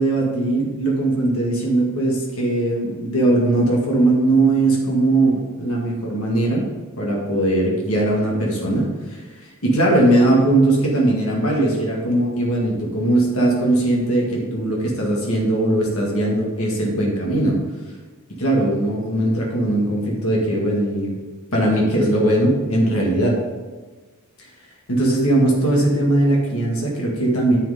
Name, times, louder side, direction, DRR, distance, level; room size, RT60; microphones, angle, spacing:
voice 1, 0.0-6.6 7.0-9.2 9.6-17.6 18.4-21.2 21.5-23.4 24.9-27.6, right 1 dB, 80° left, -2 dB, 2.0 m, -19 dB
9.8 x 6.9 x 3.8 m, 1.4 s
head